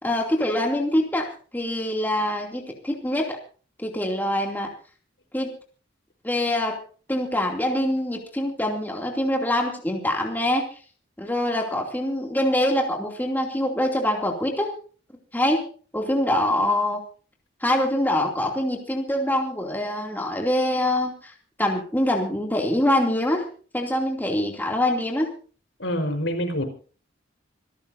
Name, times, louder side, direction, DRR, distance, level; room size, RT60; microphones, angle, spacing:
voice 1, 0.0-3.4 3.8-4.7 5.3-5.5 6.2-6.8 7.1-10.6 11.2-14.7 15.3-15.7 15.9-17.0 17.6-23.5 23.7-25.3, left 1 dB, 10° left, 0 dB, 2.8 m, -24 dB
voice 2, 25.8-26.6, equal, 70° left, 5 dB, 4.7 m, -26 dB
27.0 x 13.5 x 2.7 m, 0.40 s
head